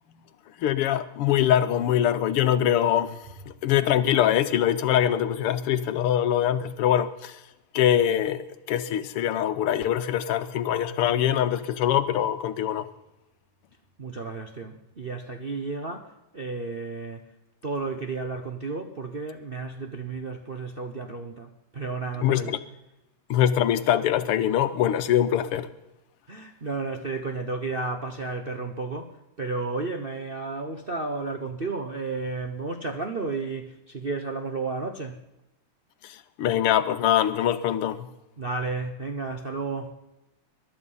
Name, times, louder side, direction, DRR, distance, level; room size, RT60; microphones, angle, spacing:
voice 1, 0.6-3.2 3.5-7.4 7.7-12.9 22.2-22.6 23.3-25.7 36.0-38.1, left 10 dB, 90° left, 1.9 m, -23 dB
voice 2, 14.0-17.2 17.6-22.6 26.3-35.2 38.4-40.0, right 3 dB, 45° right, 0.7 m, -32 dB
21.5 x 12.0 x 5.6 m
omnidirectional pair, 2.4 m